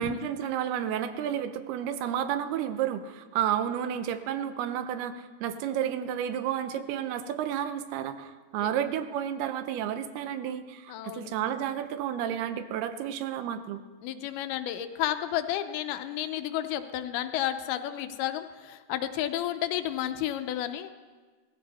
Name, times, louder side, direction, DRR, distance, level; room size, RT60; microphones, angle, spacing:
voice 1, 0.0-13.8, right 10 dB, 85° right, 10 dB, 2.7 m, -31 dB
voice 2, 10.9-11.3 14.0-20.9, left 12 dB, 80° left, 9 dB, 2.5 m, -32 dB
18.0 x 14.5 x 4.2 m, 1.4 s
omnidirectional pair, 4.5 m